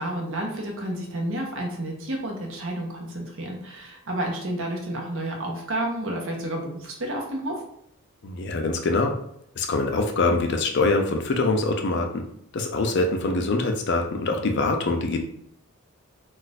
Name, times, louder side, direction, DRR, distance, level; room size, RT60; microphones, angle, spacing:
voice 1, 0.0-7.6, right 1 dB, 60° right, 0 dB, 0.7 m, -30 dB
voice 2, 8.2-9.1 9.6-12.2 12.5-15.2, left 3 dB, 50° left, 4 dB, 0.5 m, -24 dB
2.4 x 2.3 x 4.0 m, 0.72 s
head